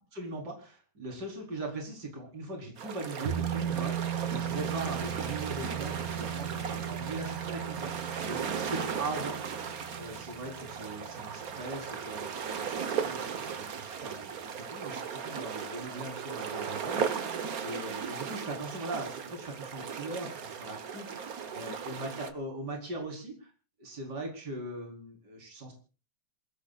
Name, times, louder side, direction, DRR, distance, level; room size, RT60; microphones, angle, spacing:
voice 1, 0.1-17.3 17.6-23.5 23.8-25.7, right 2 dB, 35° right, 1 dB, 5.0 m, -40 dB
sound 1, 2.8-22.3, right 6 dB, 55° right, 1.0 m, -37 dB
sound 2, 3.3-12.4 12.7-12.8, right 10 dB, 80° right, 2.3 m, -37 dB
28.5 x 17.0 x 2.5 m, 0.35 s
omnidirectional pair, 3.3 m